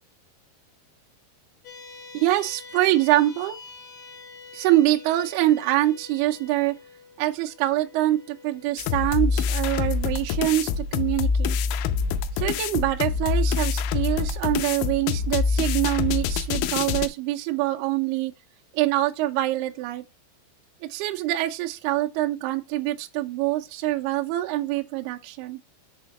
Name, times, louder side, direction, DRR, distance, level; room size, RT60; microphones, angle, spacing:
sound 1, 1.6-14.3, left 4 dB, 50° left, 2.4 m, -48 dB
voice 1, 2.1-3.6 4.5-6.7 7.2-11.6 12.4-18.3 18.7-20.0 20.8-25.6, right 15 dB, 80° right, 2.3 m, -25 dB
sound 2, 8.8-17.1, left 6 dB, 90° left, 3.1 m, -25 dB
6.7 x 4.4 x 5.3 m
omnidirectional pair, 5.5 m